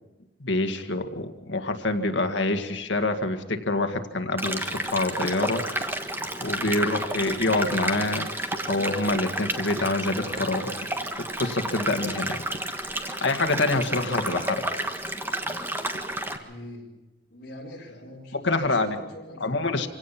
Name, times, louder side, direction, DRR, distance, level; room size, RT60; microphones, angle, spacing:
voice 1, 0.4-5.9 6.4-8.3 8.6-10.7 11.4-12.4 12.9-14.6 18.3-19.0 19.4-19.9, left 2 dB, 80° left, 6 dB, 1.9 m, -26 dB
sound 1, 4.4-16.4, right 1 dB, 10° right, 1.5 m, -31 dB
sound 2, 5.2-5.4 5.8-5.9 6.2-6.3 6.7-6.8 7.5-8.1 8.5-8.7 9.1-9.4 9.8-9.9 10.4-10.5 10.8-10.9 11.4-11.5 11.9-12.1 12.5-12.8 13.2-14.7 15.0-15.1 15.5-16.4, right 1 dB, 55° right, 1.6 m, -41 dB
voice 2, 16.0-16.9 17.3-19.7, left 1 dB, 55° left, -4 dB, 6.6 m, -44 dB
26.0 x 17.0 x 5.9 m, 1.1 s
head